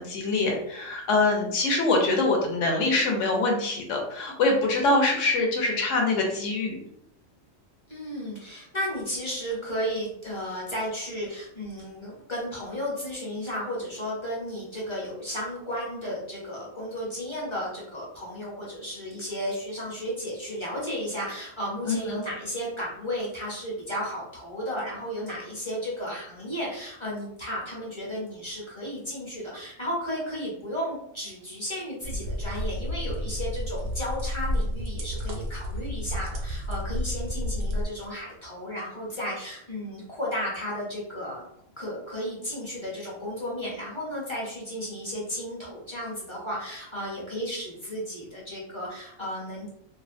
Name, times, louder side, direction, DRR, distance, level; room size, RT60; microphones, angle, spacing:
voice 1, 0.0-6.8 21.9-22.2, left 2 dB, 75° left, 0 dB, 0.9 m, -24 dB
voice 2, 7.9-41.5 41.8-49.7, equal, 30° left, -5 dB, 0.6 m, -34 dB
sound 1, 32.0-37.9, equal, 85° right, 1.0 m, -31 dB
2.6 x 2.0 x 2.5 m, 0.74 s
omnidirectional pair, 1.3 m